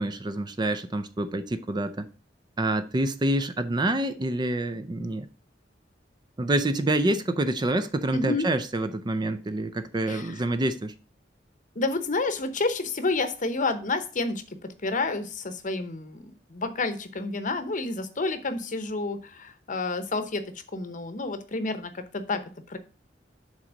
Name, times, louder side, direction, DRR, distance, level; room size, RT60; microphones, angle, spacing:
voice 1, 0.0-2.1 2.6-5.3 6.4-10.9, right 1 dB, 25° right, 0.5 m, -27 dB
voice 2, 8.1-8.5 10.1-10.4 11.7-16.2 16.5-20.4 20.7-22.4 22.7-22.8, left 3 dB, 45° left, 0.8 m, -29 dB
6.1 x 4.0 x 6.2 m
head